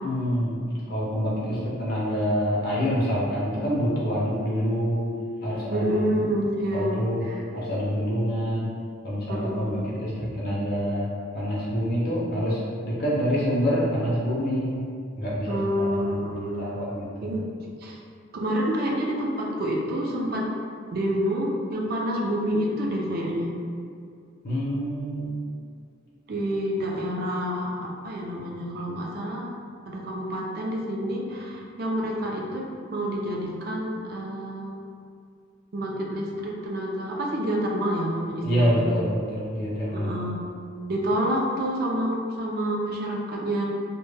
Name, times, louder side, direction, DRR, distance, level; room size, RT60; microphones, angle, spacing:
voice 1, 0.0-5.1 5.4-5.9 6.7-7.3 7.5-8.7 9.0-11.1 11.3-14.8 15.2-17.3 24.4-25.3 38.4-40.1, equal, 45° left, -7 dB, 0.5 m, -26 dB
voice 2, 5.7-7.4 9.3-9.9 15.5-16.7 17.2-17.4 17.8-18.0 18.3-20.5 20.9-23.5 26.3-29.5 29.9-32.6 32.9-34.8 35.7-38.8 39.9-40.4 40.9-43.6, equal, 45° right, -2 dB, 0.3 m, -28 dB
2.1 x 2.0 x 3.2 m, 2.3 s
head